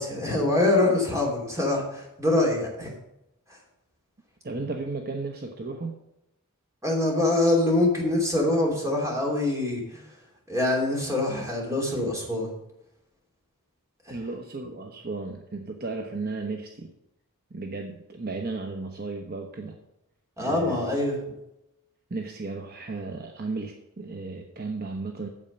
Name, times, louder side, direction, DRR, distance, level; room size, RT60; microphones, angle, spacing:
voice 1, 0.0-2.9 6.8-10.0 10.5-12.5 14.1-14.2 20.4-21.2, left 2 dB, 15° right, -1 dB, 2.9 m, -24 dB
voice 2, 4.4-6.0 14.1-16.9 17.5-19.8 20.4-20.9 22.1-25.3, right 3 dB, 45° right, 3 dB, 0.9 m, -34 dB
8.7 x 7.9 x 5.3 m, 0.87 s
head